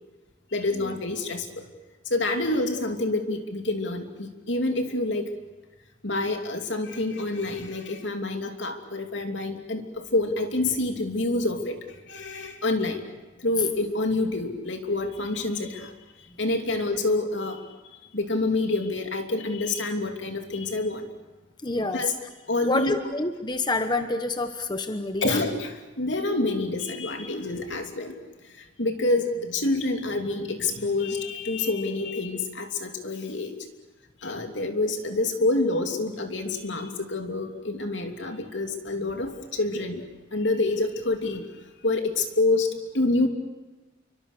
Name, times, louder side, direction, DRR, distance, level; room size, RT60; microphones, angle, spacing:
voice 1, 0.5-1.6 2.0-5.3 6.0-13.0 13.4-15.9 16.4-17.6 18.1-21.1 21.9-22.1 22.5-23.0 25.2-28.2 28.5-33.5 34.2-40.0 40.3-41.5 41.8-43.3, left 2 dB, 75° left, 5 dB, 3.0 m, -27 dB
voice 2, 21.6-22.0 22.6-25.4, left 2 dB, 20° left, 8 dB, 1.0 m, -27 dB
29.5 x 24.0 x 6.8 m, 1.2 s
head